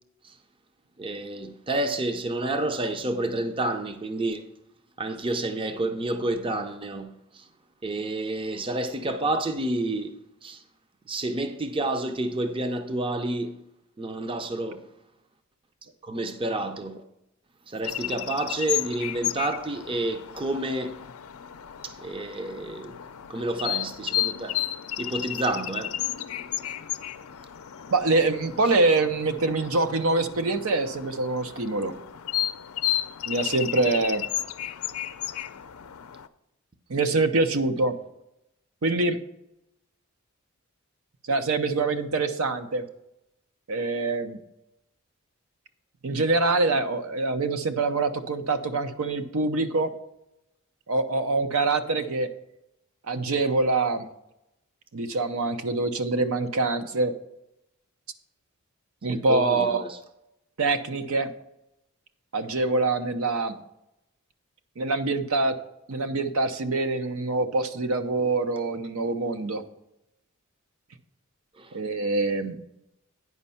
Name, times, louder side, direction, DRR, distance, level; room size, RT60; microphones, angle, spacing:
voice 1, 1.0-4.5 5.0-7.4 7.8-10.1 10.4-10.6 11.1-13.6 14.0-14.8 16.0-17.0 17.7-21.0 21.8-22.9 23.3-24.6 25.0-25.9 59.1-60.0 71.6-71.8, right 2 dB, 25° right, 0.6 m, -29 dB
sound 1, 17.8-36.3, left 12 dB, 80° left, 0.5 m, -33 dB
voice 2, 27.9-31.9 33.3-34.2 36.9-38.0 38.8-39.2 41.3-42.8 43.7-44.4 46.0-49.9 50.9-52.3 53.1-54.1 54.9-57.1 59.0-59.8 60.6-61.3 62.3-63.6 64.8-65.5 65.9-69.6 71.7-72.6, right 3 dB, 70° right, 0.7 m, -25 dB
9.5 x 5.3 x 5.6 m
head